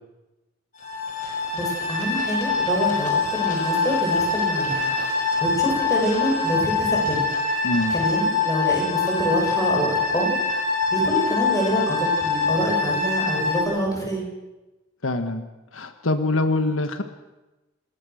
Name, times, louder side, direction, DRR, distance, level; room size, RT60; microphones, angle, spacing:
sound 1, 0.8-13.6, left 4 dB, 40° left, 6.1 m, -24 dB
voice 1, 1.2-4.9 5.4-7.3 7.9-10.3 10.9-14.2, equal, 20° left, -1 dB, 7.9 m, -26 dB
voice 2, 7.6-8.0 15.0-15.5 15.7-17.0, left 2 dB, 85° left, 8 dB, 1.5 m, -24 dB
27.5 x 20.5 x 6.5 m, 1.1 s
head